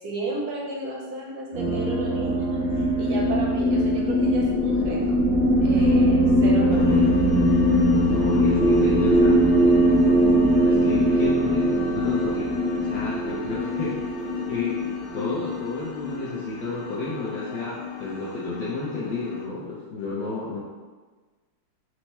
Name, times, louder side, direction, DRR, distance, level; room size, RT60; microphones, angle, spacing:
voice 1, 0.0-5.2 5.6-7.1, right 2 dB, 70° right, -2 dB, 0.9 m, -33 dB
sound 1, 1.5-16.1, equal, 40° right, 0.5 m, -21 dB
sound 2, 6.7-19.5, left 8 dB, 80° left, 1.4 m, -33 dB
voice 2, 8.1-9.4 10.6-12.6 12.8-20.6, left 3 dB, 65° left, -7 dB, 1.0 m, -32 dB
4.6 x 2.1 x 4.1 m, 1.3 s
omnidirectional pair, 2.3 m